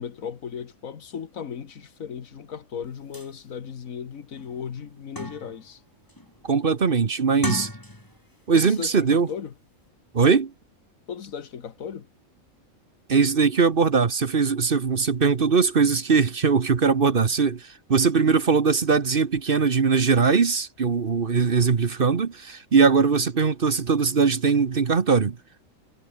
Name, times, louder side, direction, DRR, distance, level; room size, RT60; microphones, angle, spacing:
voice 1, 0.0-5.8 8.5-9.5 11.1-12.1, left 7 dB, 75° left, 1.7 m, -36 dB
sound 1, 2.8-2.9 3.1-3.3 3.9-4.0 4.4-5.7 6.1-6.5 7.3-8.3 8.6-8.8, left 1 dB, 15° left, 3.5 m, -35 dB
voice 2, 6.4-7.7 8.5-9.3 10.1-10.5 13.1-25.4, right 5 dB, 45° right, 1.2 m, -21 dB
omnidirectional pair, 1.4 m